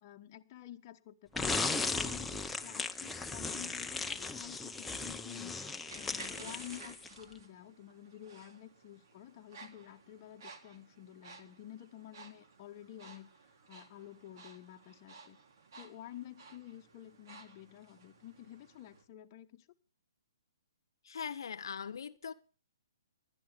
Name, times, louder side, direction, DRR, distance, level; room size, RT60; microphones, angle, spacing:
voice 1, 0.0-5.6 5.9-13.3 13.7-15.4 15.7-19.7, left 12 dB, 35° left, 1.2 m, -51 dB
sound 1, 1.3-7.2, left 3 dB, 5° left, 0.8 m, -37 dB
sound 2, 1.3-19.0, right 4 dB, 60° right, 3.2 m, -56 dB
voice 2, 21.0-22.3, left 7 dB, 70° left, 0.8 m, -41 dB
19.5 x 12.0 x 3.5 m
hypercardioid pair, 145°, 2 cm